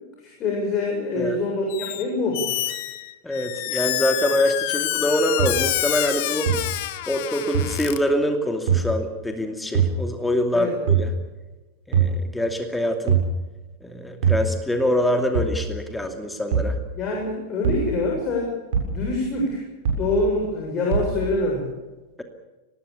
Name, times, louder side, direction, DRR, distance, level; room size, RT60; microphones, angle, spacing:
voice 1, 0.2-2.7 10.5-10.7 17.0-18.5 18.9-19.6 20.0-21.7, left 2 dB, 30° left, 0 dB, 7.8 m, -25 dB
Squeak, 1.7-2.0 2.3-8.0, left 15 dB, 50° left, 1.6 m, -27 dB
voice 2, 3.2-6.5 7.1-11.1 11.9-13.2 13.8-16.8, left 1 dB, 5° left, 5 dB, 2.6 m, -25 dB
sound 1, 5.4-5.5 6.5-6.6 7.5-7.6 8.7-8.8 9.7-9.9 10.9-11.1 11.9-12.1 13.1-13.3 14.2-14.4 15.3-15.6 16.5-16.7 17.6-17.9 18.7-19.0 19.9-20.1 20.9-21.1, right 7 dB, 60° right, 7.6 m, -21 dB
23.5 x 20.0 x 7.0 m, 1.1 s
figure-of-eight pair, 90°, 0 cm